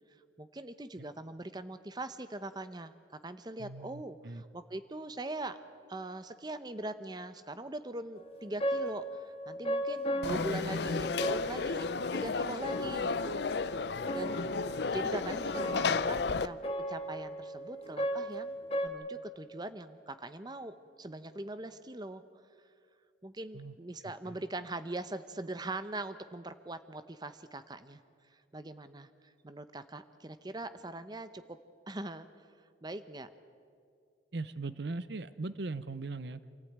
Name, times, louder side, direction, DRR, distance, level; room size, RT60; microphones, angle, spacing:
voice 1, 0.4-2.9 3.2-5.6 5.9-13.9 14.1-14.4 14.8-16.6 16.9-18.6 18.8-22.2 23.2-28.0 28.3-29.1 29.4-31.4 31.9-32.3 32.8-33.3, right 2 dB, 20° right, 11 dB, 0.8 m, -41 dB
voice 2, 3.6-4.4 14.4-14.5 23.5-23.7 24.2-24.4 34.3-36.5, right 3 dB, 60° right, 14 dB, 0.7 m, -39 dB
sound 1, 8.2-18.9, equal, 30° left, 1.7 m, -37 dB
Conversation / Crowd, 10.2-16.5, left 4 dB, 60° left, 0.5 m, -33 dB
27.0 x 15.0 x 9.4 m, 2.3 s
head